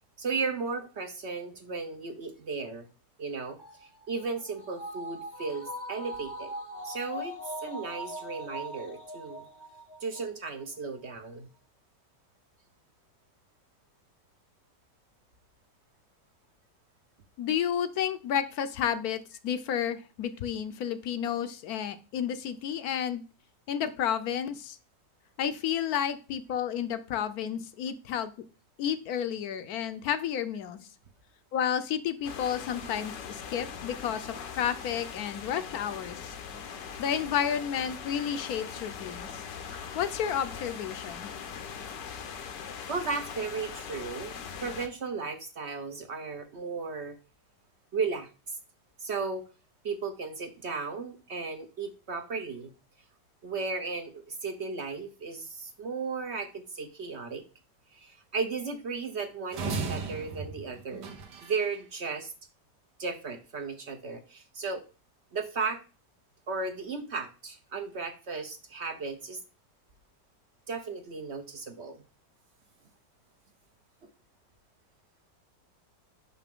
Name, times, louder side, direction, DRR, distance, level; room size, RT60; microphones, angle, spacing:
voice 1, 0.2-2.9 3.2-6.5 6.8-9.5 10.0-11.5 42.6-44.3 44.6-47.2 47.9-48.6 49.0-49.4 49.8-52.7 53.4-57.4 57.9-61.2 61.4-62.3 63.0-64.8 65.3-65.8 66.5-69.4 70.7-72.0, right 4 dB, 55° right, 7 dB, 0.8 m, -35 dB
sound 1, 3.6-10.2 10.6-10.7, equal, 20° left, 0.7 m, -41 dB
voice 2, 17.4-23.2 23.7-24.8 25.4-28.3 28.8-30.9 31.5-36.3 37.0-39.4 39.9-41.3, left 9 dB, 65° left, 11 dB, 1.0 m, -31 dB
sound 2, 32.2-44.9, left 7 dB, 85° left, 1.6 m, -41 dB
sound 3, 59.5-61.8, right 4 dB, 75° right, 1.6 m, -36 dB
5.9 x 5.8 x 3.6 m, 0.33 s
omnidirectional pair, 1.9 m